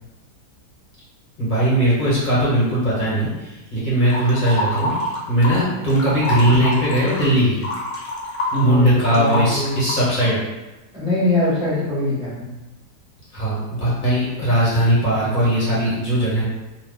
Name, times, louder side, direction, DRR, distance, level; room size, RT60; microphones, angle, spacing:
voice 1, 1.4-4.9 5.3-7.6 8.5-10.4 13.3-16.4, right 1 dB, 35° left, -9 dB, 1.4 m, -19 dB
sound 1, 4.1-5.6 5.9-10.3, left 1 dB, 60° left, 1.0 m, -27 dB
voice 2, 8.5-9.8 10.9-12.5, left 1 dB, 5° right, -9 dB, 0.4 m, -22 dB
2.8 x 2.4 x 3.7 m, 1.1 s
omnidirectional pair, 1.7 m